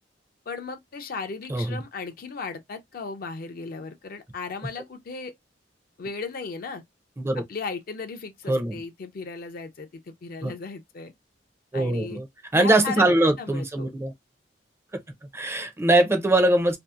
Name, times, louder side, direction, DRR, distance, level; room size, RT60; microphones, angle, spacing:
voice 1, 0.5-5.3 6.0-6.8 7.4-11.1 11.7-12.2 12.5-13.9, left 4 dB, 55° left, 0.4 m, -36 dB
voice 2, 8.5-8.8 10.4-10.5 11.7-12.3 12.5-14.1 15.3-16.8, right 1 dB, 15° right, 0.4 m, -22 dB
2.6 x 2.4 x 2.3 m
head